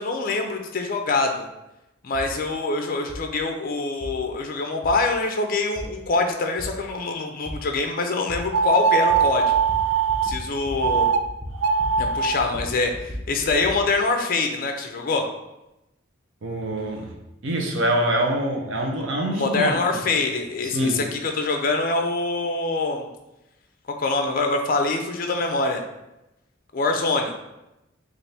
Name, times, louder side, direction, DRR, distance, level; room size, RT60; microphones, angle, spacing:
voice 1, 0.0-1.5 2.0-9.5 10.2-11.1 12.0-15.3 19.3-23.1 24.0-25.8 26.7-27.3, left 3 dB, 45° left, 4 dB, 0.4 m, -24 dB
sound 1, 2.1-2.3 3.1-3.2 4.0-4.1 4.8-4.9 5.8-5.9 6.6-6.7 7.5-7.6 8.3-8.4 9.1-9.2 9.5-9.8 10.1-10.4 10.6-10.9 11.2-12.1 12.4-13.8, equal, 10° right, 0.7 m, -35 dB
sound 2, 8.5-10.3 10.8-11.2 11.5-12.4, right 6 dB, 90° right, 0.3 m, -21 dB
voice 2, 16.4-17.1 17.4-20.0 20.6-21.0, right 1 dB, 65° right, 1 dB, 0.7 m, -25 dB
4.1 x 2.5 x 3.3 m, 0.93 s
head